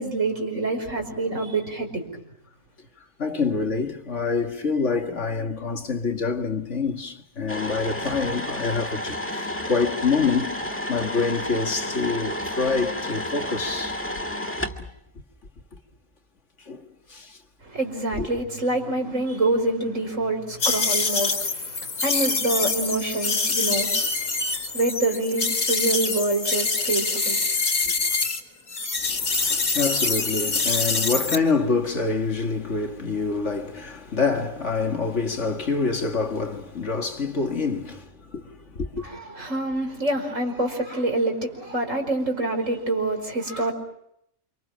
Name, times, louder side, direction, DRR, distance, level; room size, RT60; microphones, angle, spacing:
voice 1, 0.0-2.0 17.6-27.4 27.8-27.9 39.0-43.7, right 2 dB, 60° right, 5.6 m, -26 dB
voice 2, 3.2-10.6 10.9-14.0 16.7-17.4 18.1-18.3 29.0-39.1, left 4 dB, 55° left, 2.2 m, -26 dB
sound 1, 7.5-14.8, left 1 dB, 10° left, 1.9 m, -31 dB
sound 2, 20.6-28.4 28.7-31.4, left 4 dB, 75° left, 2.8 m, -25 dB
29.0 x 27.0 x 6.3 m
omnidirectional pair, 1.5 m